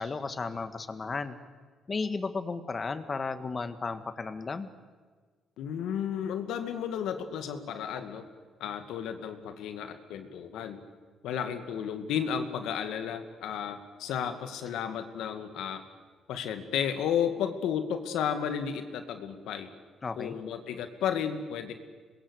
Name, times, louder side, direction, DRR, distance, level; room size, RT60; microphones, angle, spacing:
voice 1, 0.0-1.4 1.9-4.7 8.0-8.1 20.0-20.4, left 4 dB, 35° left, 10 dB, 1.8 m, -34 dB
voice 2, 5.6-8.3 8.6-10.8 11.2-15.8 16.3-19.7 20.1-21.7, left 8 dB, 85° left, 8 dB, 2.2 m, -33 dB
26.5 x 21.5 x 8.4 m, 1.5 s
cardioid pair, 90°, 0 cm